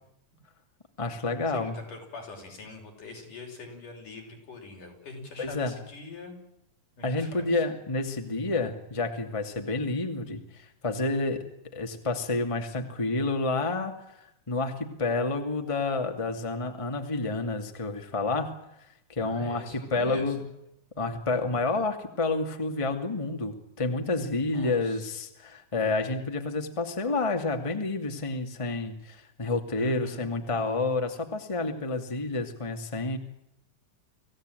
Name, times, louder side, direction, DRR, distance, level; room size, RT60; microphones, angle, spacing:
voice 1, 1.0-1.7 5.4-5.7 7.0-11.5 11.7-13.9 14.5-18.5 19.1-20.4 21.0-33.2, left 3 dB, 10° left, 5 dB, 2.0 m, -29 dB
voice 2, 1.5-6.3 7.0-7.6 19.2-20.5 24.5-25.1 29.8-30.3, left 3 dB, 80° left, 1 dB, 7.7 m, -43 dB
25.5 x 17.0 x 9.2 m, 0.83 s
omnidirectional pair, 3.6 m